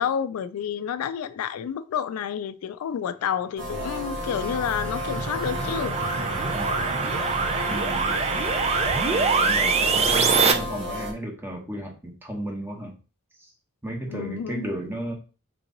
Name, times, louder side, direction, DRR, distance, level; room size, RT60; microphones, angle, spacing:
voice 1, 0.0-6.0 6.8-6.9 14.1-14.7, left 8 dB, 80° left, 0.3 m, -29 dB
sound 1, 3.6-11.1, left 1 dB, 60° right, 1.3 m, -32 dB
sound 2, 4.0-10.5, right 4 dB, 30° right, 0.4 m, -24 dB
voice 2, 7.7-8.2 8.9-13.0 13.4-13.5 13.8-15.1, right 1 dB, 10° right, 1.0 m, -34 dB
3.6 x 3.0 x 3.9 m
head